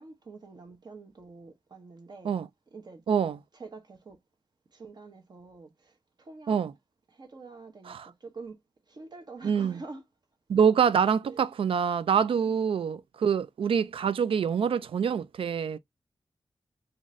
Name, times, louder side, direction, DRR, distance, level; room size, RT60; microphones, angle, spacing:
voice 1, 0.0-2.3 2.7-3.0 3.6-4.2 4.7-6.6 7.1-8.6 8.9-10.0 11.2-11.4, right 3 dB, 50° right, 0.9 m, -46 dB
voice 2, 3.1-3.4 6.5-6.7 7.9-8.1 9.4-9.8 10.5-15.8, right 7 dB, 75° right, 0.4 m, -25 dB
3.9 x 2.5 x 3.0 m
wide cardioid pair, 145°, 9 cm